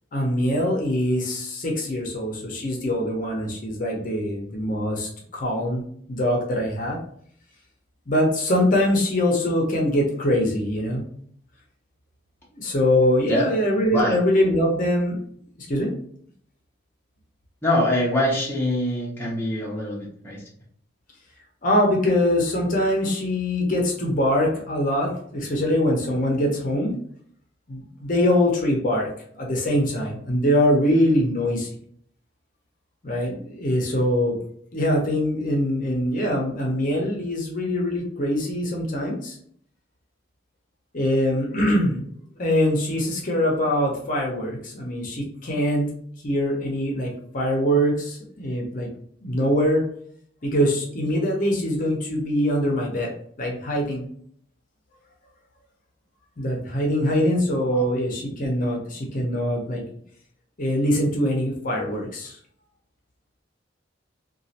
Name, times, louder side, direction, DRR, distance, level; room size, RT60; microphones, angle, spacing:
voice 1, 0.1-5.8 6.1-7.0 8.1-11.0 12.5-15.2 15.6-15.9 21.6-26.9 27.7-29.1 29.3-31.7 33.0-34.4 34.7-39.4 40.9-42.1 42.4-45.9 46.2-48.9 49.2-49.8 50.4-53.1 53.4-54.1 56.4-59.8 60.6-62.4, equal, 45° left, -1 dB, 0.7 m, -23 dB
voice 2, 17.6-20.4 57.7-57.9, left 1 dB, 10° left, -4 dB, 0.8 m, -24 dB
3.0 x 2.4 x 2.8 m, 0.63 s
head